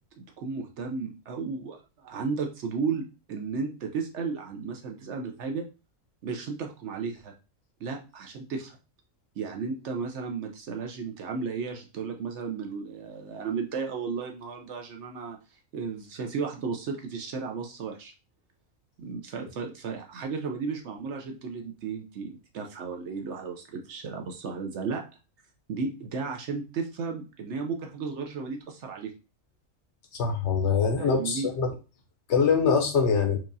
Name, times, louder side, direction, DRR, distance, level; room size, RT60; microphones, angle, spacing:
voice 1, 0.2-5.6 6.2-7.3 7.8-8.8 9.4-15.4 15.7-18.1 19.0-25.0 25.7-29.1 31.0-31.5, right 5 dB, 65° right, 3 dB, 0.8 m, -34 dB
voice 2, 30.1-31.7 32.3-33.4, left 5 dB, 60° left, 5 dB, 0.9 m, -23 dB
4.6 x 2.4 x 2.6 m, 0.32 s
omnidirectional pair, 1.4 m